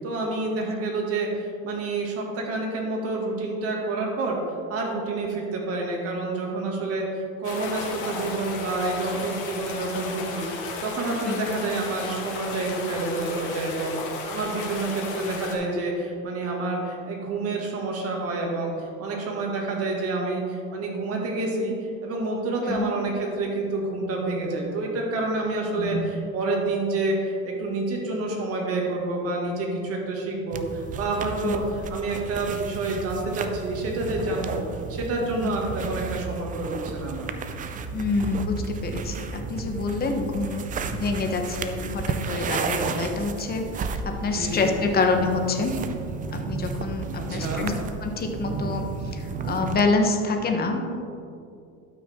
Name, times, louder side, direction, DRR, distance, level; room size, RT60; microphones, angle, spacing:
voice 1, 0.0-4.4 4.7-34.6 34.9-37.3 44.3-44.7 47.2-47.7, right 2 dB, 45° right, -1 dB, 2.0 m, -28 dB
sound 1, 7.4-15.5, left 3 dB, 85° left, 1.9 m, -34 dB
voice 2, 25.8-26.1 31.4-31.5 37.9-43.6 44.0-45.7 46.5-47.7 48.0-48.8 49.1-50.8, left 3 dB, 30° left, 4 dB, 1.0 m, -26 dB
sound 2, 30.5-49.8, right 5 dB, 25° right, 0.5 m, -33 dB
12.5 x 6.0 x 3.6 m, 2.5 s
supercardioid pair, 125°, 33 cm